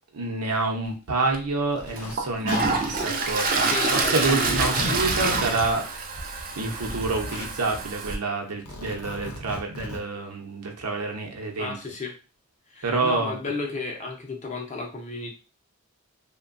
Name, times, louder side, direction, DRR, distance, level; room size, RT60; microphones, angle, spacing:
voice 1, 0.1-5.9 6.3-11.8 12.8-13.5, right 3 dB, 85° right, 2 dB, 0.7 m, -28 dB
Zipper (clothing), 0.8-0.9 1.8-2.2 2.5-3.3 4.0-5.7 6.4-7.5 8.5-10.0, left 1 dB, 80° left, 0.7 m, -35 dB
Toilet flush, 1.3-1.4 2.0-8.2, right 3 dB, 40° right, 0.4 m, -27 dB
voice 2, 3.5-4.6 11.6-12.1 12.7-15.3, left 3 dB, 35° left, 2 dB, 0.6 m, -33 dB
2.8 x 2.2 x 2.5 m, 0.32 s
head